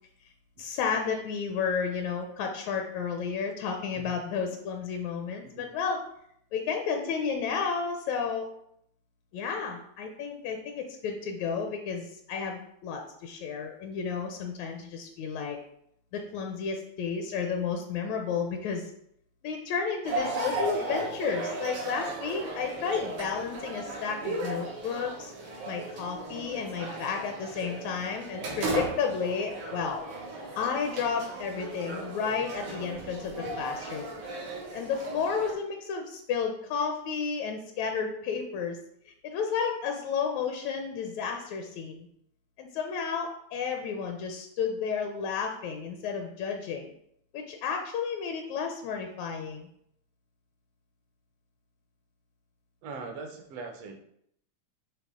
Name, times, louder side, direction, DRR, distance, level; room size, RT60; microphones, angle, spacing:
voice 1, 0.6-6.0 6.5-8.5 9.3-15.6 16.1-18.9 19.4-25.3 25.7-30.1 30.6-34.1 34.7-38.8 39.1-42.1 42.6-46.9 47.3-49.7, left 6 dB, 80° left, 4 dB, 1.9 m, -32 dB
voice 2, 5.4-5.8 52.8-54.0, right 4 dB, 70° right, 3 dB, 1.6 m, -42 dB
sound 1, 20.0-35.5, right 2 dB, 90° right, 3.0 m, -36 dB
8.2 x 3.5 x 3.6 m, 0.72 s
omnidirectional pair, 3.3 m